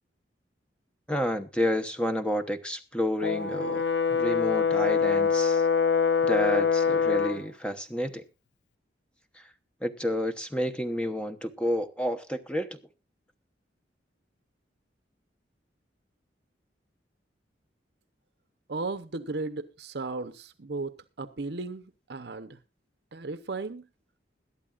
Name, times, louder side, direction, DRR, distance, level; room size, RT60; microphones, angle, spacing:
voice 1, 1.1-3.8 4.1-5.6 6.2-8.2 9.8-12.8, equal, 5° left, 0.9 m, -30 dB
Brass instrument, 3.2-7.4, left 6 dB, 70° left, 0.6 m, -24 dB
voice 2, 18.7-22.6 23.1-23.9, right 3 dB, 65° right, 0.8 m, -35 dB
21.5 x 11.5 x 2.4 m
head